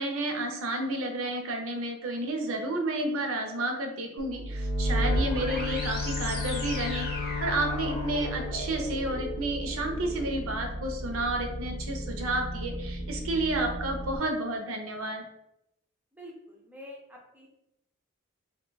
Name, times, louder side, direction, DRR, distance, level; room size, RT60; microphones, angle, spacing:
voice 1, 0.0-7.1 7.4-15.2, right 2 dB, 65° right, 3 dB, 0.6 m, -31 dB
sound 1, 4.2-14.2, equal, 40° left, 0.7 m, -33 dB
Bowed string instrument, 4.9-10.0, left 8 dB, 85° left, 0.4 m, -37 dB
voice 2, 16.7-17.5, left 1 dB, 5° right, -2 dB, 0.5 m, -46 dB
2.6 x 2.3 x 3.9 m, 0.85 s
head